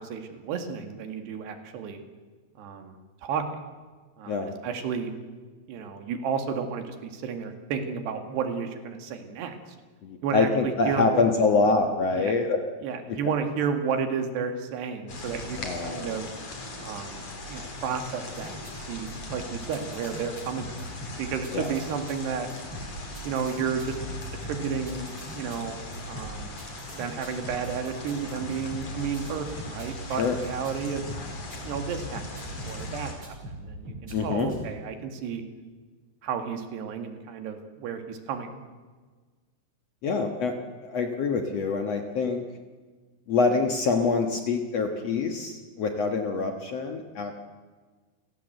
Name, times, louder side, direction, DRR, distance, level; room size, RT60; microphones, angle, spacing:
voice 1, 0.0-2.0 2.6-3.4 4.2-5.1 5.7-9.6 10.2-11.2 12.1-12.3 12.8-16.3 16.8-17.2 17.5-20.7 21.2-22.5 23.2-24.0 24.4-25.0 25.3-25.8 26.1-26.5 26.9-31.0 31.6-35.4 36.2-38.5, right 6 dB, 90° right, 6 dB, 4.2 m, -32 dB
voice 2, 10.0-12.6 13.1-13.2 15.6-16.1 21.5-21.7 30.2-30.4 34.1-34.5 40.0-40.6 40.8-42.4 43.3-47.3, left 4 dB, 60° left, 5 dB, 1.9 m, -25 dB
sound 1, 15.1-33.1, left 2 dB, 40° left, 4.6 m, -39 dB
sound 2, 18.3-32.9 33.2-34.6, right 1 dB, 30° right, 6.1 m, -42 dB
29.5 x 17.5 x 8.0 m, 1.4 s
omnidirectional pair, 4.7 m